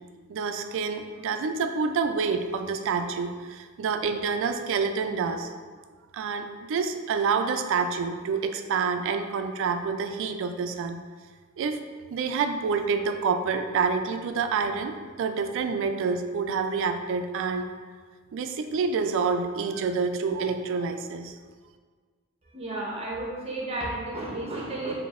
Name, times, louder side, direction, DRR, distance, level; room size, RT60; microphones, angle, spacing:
voice 1, 0.3-5.5 6.1-11.0 11.6-11.8 12.1-17.7 18.3-21.3, right 5 dB, 60° right, 7 dB, 0.3 m, -28 dB
voice 2, 22.5-24.9, right 2 dB, 30° right, -3 dB, 0.8 m, -32 dB
6.0 x 2.6 x 2.4 m, 1.6 s
head